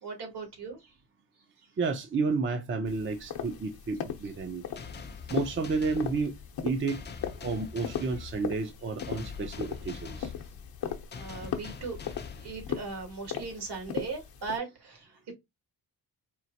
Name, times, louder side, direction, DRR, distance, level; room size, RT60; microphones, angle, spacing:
voice 1, 0.0-0.9 11.1-15.3, right 4 dB, 75° right, 2.2 m, -39 dB
voice 2, 1.8-4.6 5.3-6.4 6.6-7.0 7.4-10.3, right 4 dB, 30° right, 0.6 m, -31 dB
sound 1, 2.9-14.6, left 9 dB, 60° left, 0.8 m, -39 dB
sound 2, 4.8-13.2, left 5 dB, 25° left, 0.5 m, -44 dB
4.5 x 3.0 x 2.8 m
wide cardioid pair, 170°, 41 cm